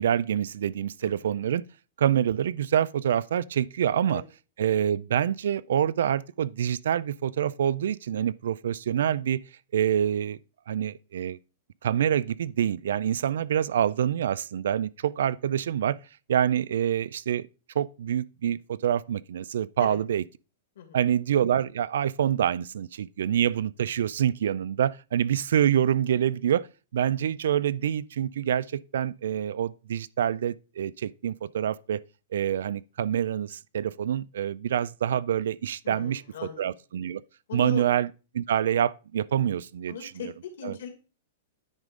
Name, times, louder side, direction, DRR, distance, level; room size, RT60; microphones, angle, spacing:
voice 1, 0.0-1.6 2.0-4.2 4.6-9.4 9.7-10.4 10.7-11.4 11.8-16.0 16.3-17.4 17.8-20.2 20.9-26.7 26.9-32.0 32.3-36.2 36.6-37.2 37.5-38.1 38.3-40.3 40.6-40.7, right 9 dB, 70° right, 0.3 m, -26 dB
voice 2, 1.0-1.3 4.1-4.2 19.8-20.0 20.8-21.0 35.8-36.6 37.5-37.8 39.9-40.9, left 7 dB, 60° left, 2.4 m, -39 dB
9.6 x 3.8 x 5.2 m
supercardioid pair, 180°, 0 cm